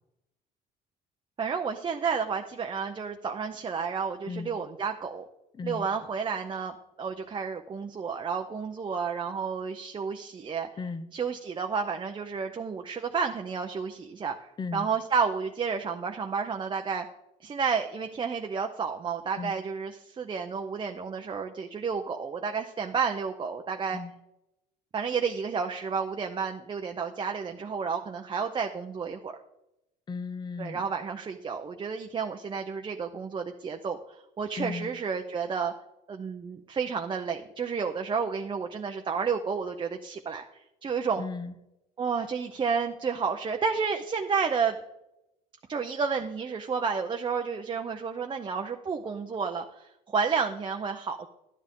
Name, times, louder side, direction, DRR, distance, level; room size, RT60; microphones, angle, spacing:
voice 1, 1.4-5.2 5.6-10.7 11.1-17.1 17.4-24.0 24.9-29.3 30.6-34.0 34.4-35.7 36.1-40.4 40.8-41.2 42.0-44.8 45.7-51.3, right 5 dB, 30° right, 4 dB, 0.6 m, -31 dB
voice 2, 5.5-5.9 10.8-11.1 14.6-14.9 19.4-19.5 23.9-24.1 30.1-30.8 34.6-34.9 41.2-41.5, left 4 dB, 25° left, 12 dB, 0.7 m, -35 dB
11.5 x 9.8 x 3.6 m, 0.89 s
cardioid pair, 110°, 17 cm